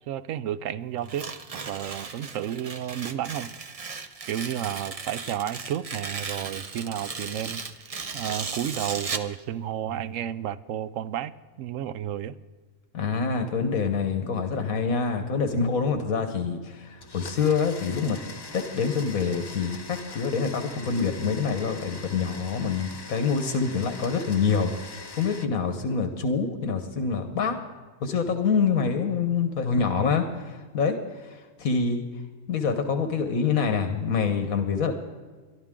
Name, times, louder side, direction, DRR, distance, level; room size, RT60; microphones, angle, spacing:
voice 1, 0.1-1.3 1.5-3.5 4.2-11.3 11.6-12.4, right 10 dB, 70° right, 14 dB, 0.9 m, -32 dB
Tearing, 1.0-9.3, right 4 dB, 35° right, 0.6 m, -36 dB
voice 2, 12.9-18.2 18.5-27.6 28.0-32.0 32.5-34.9, left 5 dB, 80° left, 7 dB, 1.5 m, -26 dB
Domestic sounds home sounds, 17.0-25.5, left 3 dB, 30° left, 0.4 m, -42 dB
23.0 x 12.5 x 3.7 m, 1.5 s
omnidirectional pair, 1.5 m